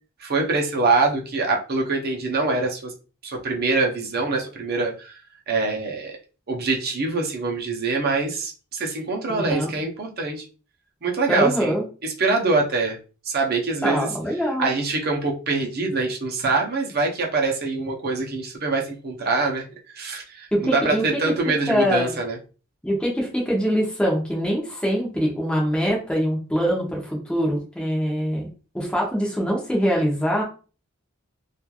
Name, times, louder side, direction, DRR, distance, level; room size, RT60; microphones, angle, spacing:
voice 1, 0.2-2.9 3.2-5.2 5.5-6.1 6.5-10.4 11.0-13.0 13.2-14.1 14.6-19.7 19.9-22.4, right 3 dB, 50° right, 0 dB, 0.7 m, -24 dB
voice 2, 9.3-9.7 11.3-11.8 13.8-14.7 20.5-21.1 21.7-22.1 22.8-28.5 28.7-30.4, equal, 5° left, -3 dB, 0.7 m, -23 dB
3.0 x 2.4 x 2.3 m, 0.35 s
head